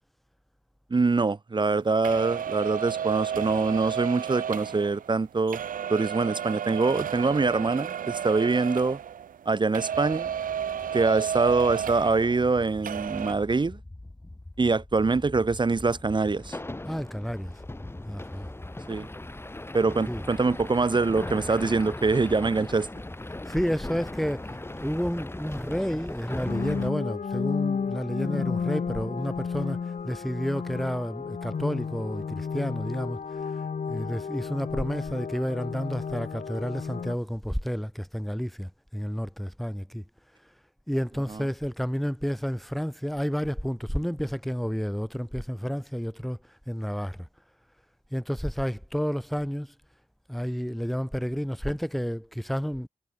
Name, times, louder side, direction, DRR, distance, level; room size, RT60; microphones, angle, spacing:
voice 1, 0.9-5.6 5.9-9.0 9.4-10.3 10.9-13.8 14.6-16.6 18.9-19.1 19.7-22.9, right 3 dB, 35° right, 1.3 m, -24 dB
sound 1, 2.0-9.5 9.7-12.6 12.8-13.3, right 9 dB, 85° right, 0.7 m, -32 dB
sound 2, 9.9-26.9, left 2 dB, 15° left, 6.3 m, -39 dB
voice 2, 16.9-17.5 18.1-18.5 20.1-20.2 23.4-29.8 30.0-33.2 33.9-40.0 40.9-46.4 46.7-47.3 48.1-49.7 50.3-52.9, equal, ahead, 3.7 m, -30 dB
sound 3, 26.5-37.1, left 6 dB, 65° left, 3.8 m, -32 dB
wide cardioid pair, 90°, 14 cm